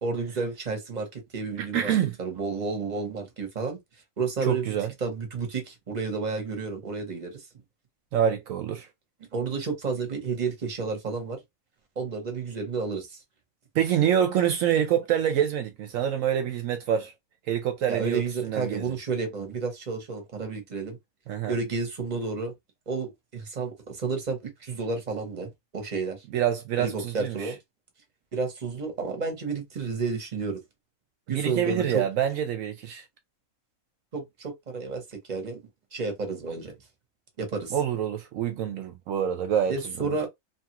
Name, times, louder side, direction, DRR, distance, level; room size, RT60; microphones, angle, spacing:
voice 1, 0.0-1.9 2.2-3.8 4.2-4.7 5.0-7.4 9.3-11.4 12.0-13.2 17.9-21.0 21.5-22.5 22.9-26.2 26.8-27.6 28.3-30.6 31.3-32.0 34.1-35.6 35.9-36.7 37.4-37.7 39.7-40.3, right 4 dB, 35° right, 0.9 m, -31 dB
voice 2, 1.6-2.1 4.5-4.9 8.1-8.9 13.7-17.1 17.5-18.8 21.3-21.6 26.3-27.5 31.3-33.0 37.7-39.8, right 9 dB, 70° right, 0.9 m, -26 dB
2.9 x 2.4 x 2.9 m
omnidirectional pair, 1.5 m